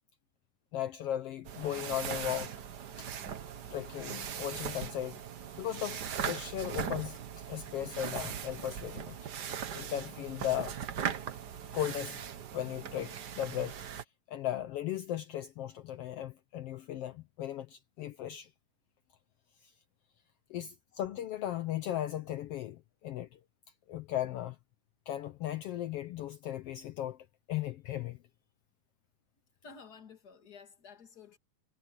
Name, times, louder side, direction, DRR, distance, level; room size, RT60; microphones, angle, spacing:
voice 1, 0.7-2.5 3.0-3.1 3.7-5.2 5.6-7.2 7.5-9.2 9.7-10.8 11.7-12.2 12.5-14.0 14.3-18.5 20.5-23.4 23.9-24.6 25.1-27.2 27.5-28.2, left 12 dB, 80° left, 1.3 m, -37 dB
sound 1, 1.4-14.0, right 8 dB, 85° right, 0.9 m, -39 dB
voice 2, 29.6-31.4, left 5 dB, 35° left, 2.5 m, -52 dB
omnidirectional pair, 3.6 m